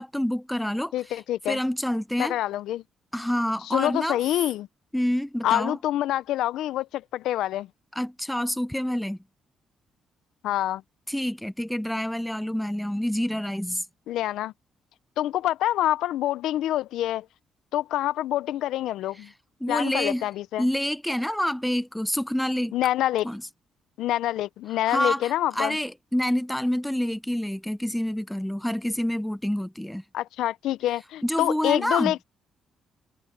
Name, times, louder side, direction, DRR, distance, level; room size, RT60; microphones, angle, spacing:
voice 1, 0.0-1.2 1.5-2.4 3.1-4.2 4.9-5.8 8.0-9.2 11.1-13.8 19.6-20.3 20.6-22.7 23.2-23.4 24.9-30.0 31.2-32.1, equal, 5° left, 0.6 m, -27 dB
voice 2, 0.9-1.6 2.2-2.8 3.7-4.7 5.4-7.7 10.4-10.8 14.1-14.5 15.2-17.3 17.7-19.3 19.7-20.7 22.7-23.3 24.0-25.8 30.1-32.2, left 13 dB, 85° left, 0.5 m, -26 dB
cardioid pair, 90°, 0 cm